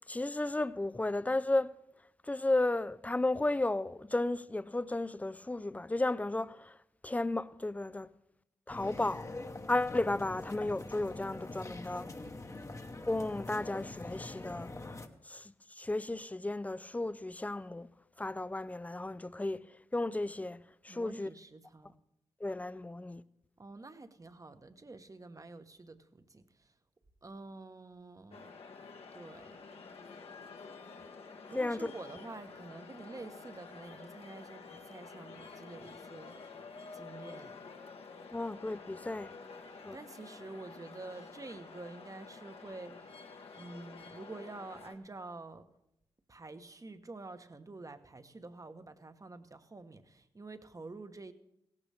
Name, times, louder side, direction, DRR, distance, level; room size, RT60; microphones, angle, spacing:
voice 1, 0.1-1.7 2.2-6.8 7.0-8.1 8.7-9.3 9.7-12.1 13.0-14.7 15.2-17.9 18.2-19.7 19.9-21.3 22.4-23.2 31.6-31.9 38.3-39.3 39.8-40.0, left 2 dB, 15° left, 0.5 m, -34 dB
sound 1, 8.7-15.1, left 2 dB, 30° left, 1.1 m, -44 dB
voice 2, 20.9-21.9 23.6-26.7 27.2-28.5 29.1-29.6 31.5-36.5 36.9-37.6 39.7-43.2 43.5-45.7 46.3-51.3, right 3 dB, 30° right, 1.1 m, -48 dB
sound 2, 28.3-44.9, left 4 dB, 65° left, 1.4 m, -50 dB
17.0 x 15.0 x 3.4 m
supercardioid pair, 45°, 11 cm